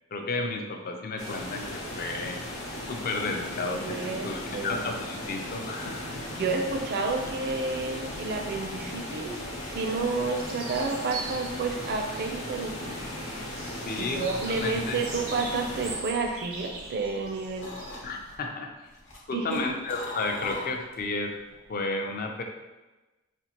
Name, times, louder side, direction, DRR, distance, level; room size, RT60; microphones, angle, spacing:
voice 1, 0.1-2.4 2.9-4.0 4.2-6.2 13.9-14.2 14.6-15.0 18.0-18.7 19.3-21.3 21.7-22.4, left 3 dB, 45° left, 3 dB, 0.4 m, -32 dB
sound 1, 1.2-15.9, left 1 dB, 85° left, 0.9 m, -37 dB
voice 2, 3.8-4.8 6.3-13.1 14.0-17.7 19.3-19.6, right 3 dB, 50° right, 3 dB, 0.4 m, -30 dB
sound 2, 7.0-18.4, right 3 dB, 85° right, 0.7 m, -43 dB
sound 3, 15.8-17.2 17.6-18.3 18.9-21.1 21.4-21.8, left 2 dB, 65° left, 1.0 m, -41 dB
5.1 x 2.4 x 2.9 m, 1.1 s
head